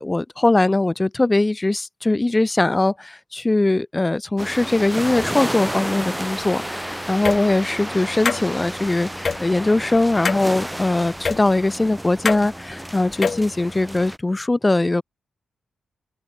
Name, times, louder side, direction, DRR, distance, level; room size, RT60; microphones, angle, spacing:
voice 1, 0.0-6.8 7.1-15.0, left 2 dB, 15° left, 1.3 m, -21 dB
sound 1, 4.4-14.2, equal, 5° right, 7.6 m, -31 dB
sound 2, 7.2-7.4 8.3-8.4 9.2-9.4 10.2-10.5 11.2-11.4 12.3-12.4 13.1-13.4, left 5 dB, 35° left, 2.0 m, -22 dB
open air
wide cardioid pair, 150°, 0 cm